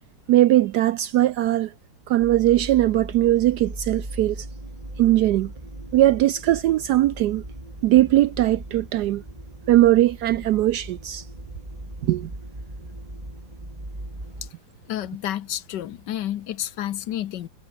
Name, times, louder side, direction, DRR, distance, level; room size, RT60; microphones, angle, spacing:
voice 1, 0.3-1.7 2.1-4.5 5.0-5.5 5.9-7.4 7.8-9.2 9.7-11.2 12.0-12.3, right 14 dB, 75° right, 1.0 m, -19 dB
sound 1, 2.2-14.5, right 1 dB, 20° right, 4.9 m, -38 dB
voice 2, 14.9-17.5, left 12 dB, 65° left, 1.4 m, -30 dB
omnidirectional pair, 2.1 m